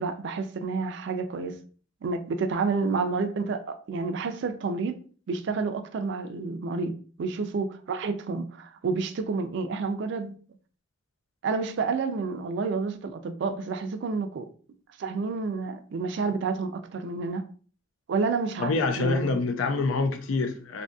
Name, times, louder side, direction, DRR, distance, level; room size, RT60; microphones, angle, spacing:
voice 1, 0.0-1.5 2.0-5.0 5.3-10.4 11.4-14.5 15.0-17.4 18.1-19.4, right 4 dB, 60° right, 0.3 m, -29 dB
voice 2, 18.6-20.8, left 3 dB, 85° left, 0.4 m, -26 dB
2.7 x 2.5 x 2.3 m
head